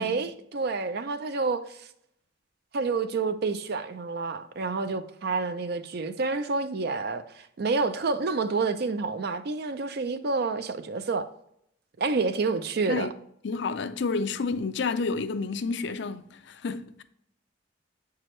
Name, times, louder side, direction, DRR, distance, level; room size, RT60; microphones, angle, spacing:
voice 1, 0.0-1.9 2.7-11.3 12.0-13.1, right 4 dB, 55° right, 0.5 m, -29 dB
voice 2, 13.4-17.0, left 4 dB, 60° left, 0.5 m, -30 dB
7.6 x 4.7 x 3.1 m
head